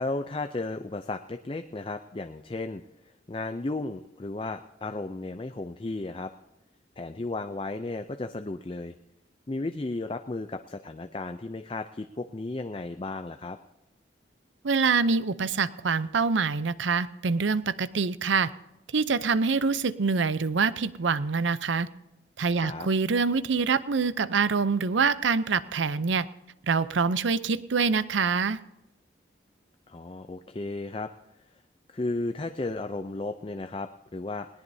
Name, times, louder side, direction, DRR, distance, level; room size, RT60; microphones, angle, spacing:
voice 1, 0.0-6.3 7.0-8.9 9.5-13.6 22.5-22.9 29.9-31.1 31.9-34.5, left 2 dB, 30° left, 7 dB, 0.5 m, -34 dB
voice 2, 14.6-18.5 18.9-21.9 22.4-26.3 26.7-28.6, right 5 dB, 85° right, 15 dB, 0.6 m, -25 dB
20.0 x 18.5 x 2.7 m, 0.96 s
head